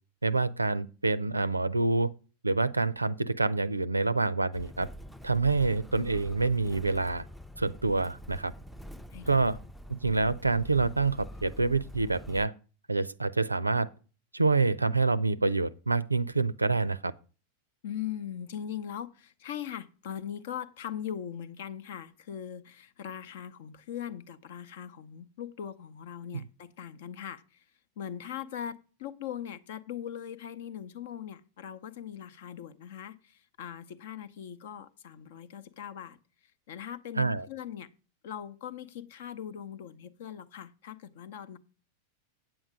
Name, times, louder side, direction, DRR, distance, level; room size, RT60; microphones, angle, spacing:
voice 1, 0.2-2.1 2.4-4.9 5.2-7.2 7.6-8.5 9.3-9.6 9.9-12.5 12.9-13.9 14.3-17.1 26.3-26.4 37.2-37.5, right 3 dB, 80° right, 0.4 m, -27 dB
Motor vehicle (road), 4.5-12.5, equal, 5° left, 0.5 m, -46 dB
voice 2, 17.8-27.6 28.0-36.2 36.7-37.9 38.2-41.6, left 9 dB, 55° left, 0.7 m, -40 dB
8.9 x 8.0 x 4.9 m
figure-of-eight pair, 90°, 0 cm